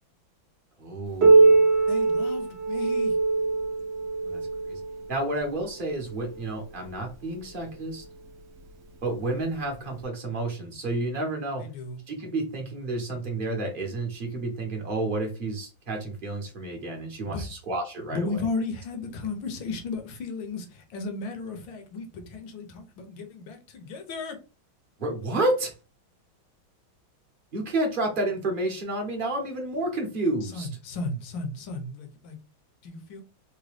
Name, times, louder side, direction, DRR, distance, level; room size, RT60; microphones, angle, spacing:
voice 1, 0.8-1.6 4.2-4.8 5.1-8.0 9.0-11.7 12.1-18.4 25.0-25.7 27.5-30.7, right 2 dB, 40° right, 0.7 m, -30 dB
Piano, 1.2-6.5 7.4-7.5 8.0-8.1 8.9-9.0 10.0-10.1, right 3 dB, 80° right, 0.5 m, -22 dB
voice 2, 1.9-3.2 11.6-12.0 17.2-17.5 18.1-24.4 30.4-32.4 32.8-33.2, left 3 dB, 70° left, 1.5 m, -34 dB
3.9 x 2.2 x 3.2 m
omnidirectional pair, 2.2 m